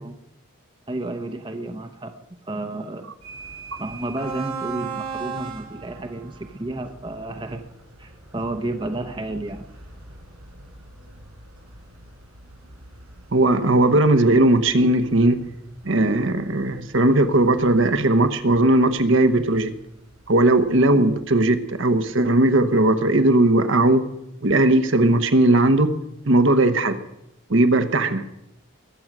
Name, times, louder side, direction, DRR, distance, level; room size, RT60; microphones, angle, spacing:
voice 1, 0.9-2.1 2.4-3.1 3.8-7.6 8.0-9.7, right 2 dB, 20° right, 6 dB, 0.8 m, -31 dB
sound 1, 3.2-20.9, right 5 dB, 85° right, 5.2 m, -40 dB
voice 2, 13.3-15.4 15.8-19.7 20.3-24.0 24.4-25.9 26.3-27.0 27.5-28.2, right 2 dB, 60° right, 9 dB, 1.0 m, -18 dB
21.0 x 7.9 x 6.1 m, 0.83 s
head